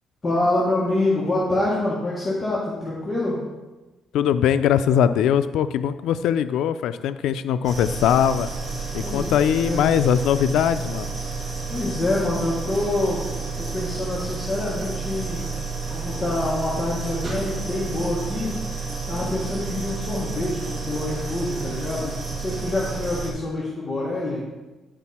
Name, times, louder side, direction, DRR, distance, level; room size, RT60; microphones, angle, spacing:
voice 1, 0.2-3.4 9.0-9.3 9.6-9.9 11.7-13.3 13.6-15.4 15.9-18.5 19.1-24.4, left 2 dB, 20° left, -6 dB, 1.4 m, -26 dB
voice 2, 4.1-8.5 8.9-11.2, left 9 dB, 85° left, 12 dB, 0.3 m, -21 dB
sound 1, 7.6-23.3, right 4 dB, 35° right, 1.9 m, -31 dB
9.9 x 4.5 x 4.2 m, 1.2 s
cardioid pair, 155°, 0 cm